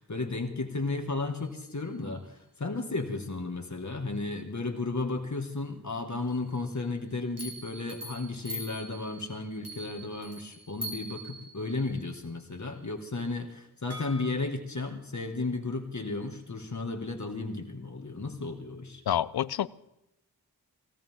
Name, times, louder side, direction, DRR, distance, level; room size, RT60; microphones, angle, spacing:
voice 1, 0.0-19.0, left 3 dB, 50° left, 4 dB, 2.0 m, -34 dB
sound 1, 1.4-1.7 6.3-6.9 7.4-12.4 13.9-14.2, right 1 dB, 40° right, 3.4 m, -43 dB
voice 2, 19.1-19.7, left 10 dB, 90° left, 19 dB, 0.5 m, -27 dB
18.5 x 17.0 x 3.7 m, 0.85 s
wide cardioid pair, 55°, 37 cm